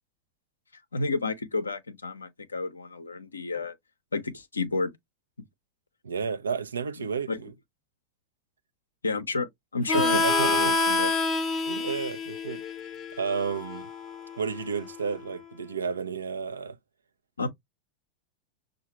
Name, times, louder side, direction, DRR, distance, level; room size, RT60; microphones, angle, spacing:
voice 1, 0.9-3.8 4.1-4.9 7.3-7.4 9.0-11.1 17.4-17.5, left 3 dB, 75° left, 0.7 m, -31 dB
voice 2, 6.0-7.5 9.9-10.8 11.7-12.6 13.1-13.9 14.4-16.8, right 6 dB, 70° right, 0.6 m, -32 dB
Harmonica, 9.9-15.2, left 3 dB, 30° left, 0.7 m, -28 dB
6.3 x 2.4 x 2.9 m
figure-of-eight pair, 90°, 0 cm